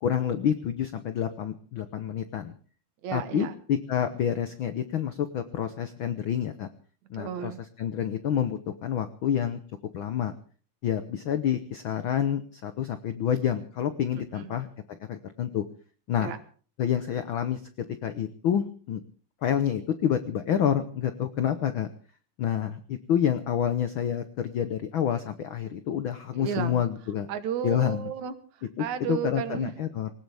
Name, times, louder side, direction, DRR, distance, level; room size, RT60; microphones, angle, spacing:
voice 1, 0.0-2.5 3.1-6.7 7.1-7.5 7.8-9.6 9.9-10.3 10.8-15.6 16.1-16.3 16.8-17.6 18.0-19.0 19.4-21.9 22.4-27.3 27.6-28.1 28.8-30.1, left 9 dB, 90° left, 10 dB, 1.1 m, -28 dB
voice 2, 3.0-3.5 7.2-7.6 14.1-14.6 16.1-16.4 26.3-26.8 27.3-29.7, right 8 dB, 70° right, 11 dB, 2.5 m, -33 dB
20.0 x 19.0 x 3.5 m, 0.42 s
omnidirectional pair, 3.6 m